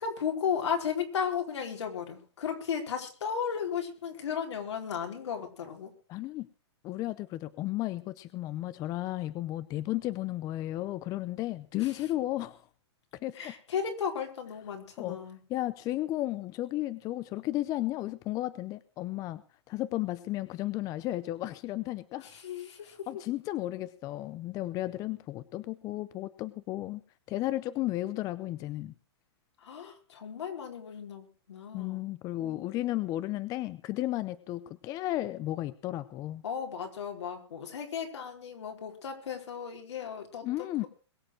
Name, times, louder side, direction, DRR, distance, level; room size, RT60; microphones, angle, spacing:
voice 1, 0.0-5.9 11.8-12.0 13.3-15.4 22.2-23.1 29.6-32.1 32.4-33.1 36.4-40.9, left 7 dB, 80° left, 2 dB, 4.6 m, -35 dB
voice 2, 6.1-6.5 6.8-12.6 13.2-13.5 15.0-15.2 15.5-19.4 19.7-22.3 23.1-27.0 27.3-28.9 31.7-36.4 40.4-40.8, left 15 dB, 25° left, 16 dB, 0.6 m, -34 dB
22.0 x 7.5 x 6.3 m, 0.39 s
hypercardioid pair, 150°, 14 cm